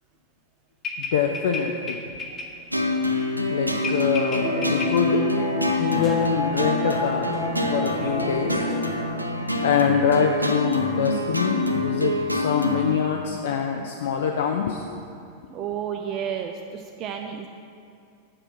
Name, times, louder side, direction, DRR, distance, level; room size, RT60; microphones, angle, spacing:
sound 1, 0.8-2.5 3.8-4.9 6.0-6.8 7.3-7.8 8.7-9.0 10.1-10.2, left 4 dB, 25° left, 0.9 m, -34 dB
voice 1, 1.1-2.0 3.5-5.2 5.8-7.4 7.7-8.7 9.6-14.8, left 7 dB, 60° left, 3 dB, 0.4 m, -24 dB
sound 2, 2.7-12.9, left 2 dB, 85° right, 0.5 m, -26 dB
sound 3, 4.4-10.4 10.7-10.8, equal, 10° right, 1.5 m, -31 dB
voice 2, 15.5-17.5, right 8 dB, 35° right, 4 dB, 0.4 m, -31 dB
7.4 x 5.0 x 5.7 m, 2.4 s
figure-of-eight pair, 90°, 0 cm